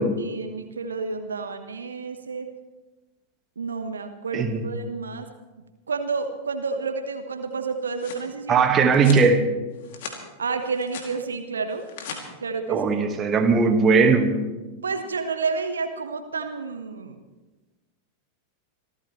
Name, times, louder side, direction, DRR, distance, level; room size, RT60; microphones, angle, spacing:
voice 1, 0.2-2.5 3.6-5.3 5.9-8.6 10.4-11.9 12.4-12.9 14.8-17.2, right 4 dB, 70° right, 7 dB, 1.1 m, -30 dB
voice 2, 4.3-4.6 8.5-9.5 12.7-14.3, right 4 dB, 25° right, 6 dB, 1.6 m, -19 dB
sound 1, 7.6-8.3 8.9-9.3 9.7-10.2 10.6-11.1 11.7-12.2, left 6 dB, 55° left, 2.6 m, -38 dB
26.5 x 14.0 x 3.2 m, 1.2 s
figure-of-eight pair, 90°, 0 cm